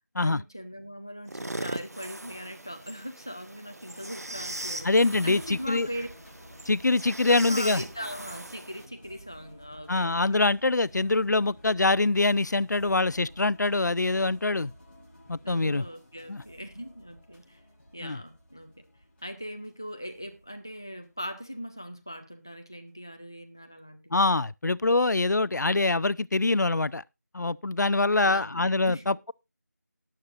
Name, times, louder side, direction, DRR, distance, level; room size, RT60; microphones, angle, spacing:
voice 1, 0.2-6.1 7.3-10.2 15.4-17.6 17.9-18.8 19.2-24.2 28.1-29.1, equal, 15° left, 0.5 m, -40 dB
sound 1, 1.3-8.9, right 1 dB, 60° right, 1.6 m, -39 dB
sound 2, 4.3-22.0 22.6-22.9, left 1 dB, 35° left, 6.0 m, -53 dB
voice 2, 4.8-5.9 6.7-7.8 9.9-14.7 15.3-15.8 16.3-16.4 18.0-18.2 24.1-27.0 27.3-29.3, left 3 dB, 80° left, 0.5 m, -24 dB
18.5 x 7.2 x 2.5 m
figure-of-eight pair, 175°, 9 cm